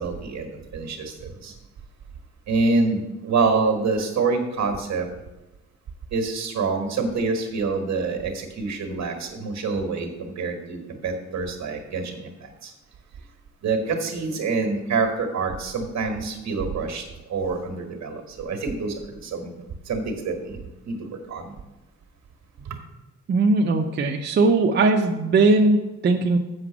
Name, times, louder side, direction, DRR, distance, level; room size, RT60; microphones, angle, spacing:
voice 1, 0.0-1.5 2.5-5.1 6.1-12.7 13.6-17.0 17.3-19.5 19.9-20.6 20.8-21.5 22.7-22.8, right 4 dB, 60° right, 4 dB, 1.5 m, -26 dB
voice 2, 23.3-26.4, right 3 dB, 35° right, 2 dB, 0.5 m, -19 dB
7.6 x 5.9 x 6.0 m, 1.0 s
wide cardioid pair, 175°, 30 cm